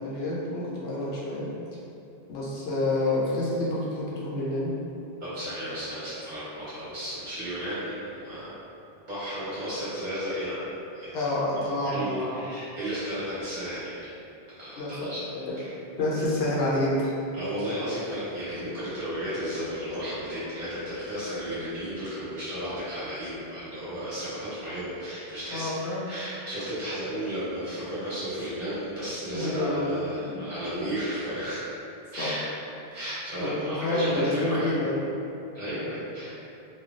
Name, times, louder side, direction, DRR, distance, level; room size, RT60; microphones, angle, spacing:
voice 1, 0.0-1.5 2.3-4.7 6.0-6.1 11.1-12.3 14.8-15.1 15.4-15.5 16.0-17.1 25.5-26.1 29.3-30.4 32.2-32.3 33.4-35.1, left 1 dB, 80° left, -6 dB, 0.9 m, -28 dB
voice 2, 5.2-8.6 9.1-10.7 10.9-11.2 11.8-14.1 14.5-15.2 15.6-15.7 17.3-25.7 26.1-31.7 32.1-32.4 32.9-34.8 35.5-36.4, equal, 50° right, -13 dB, 1.5 m, -33 dB
3.2 x 2.3 x 2.4 m, 2.7 s
omnidirectional pair, 1.0 m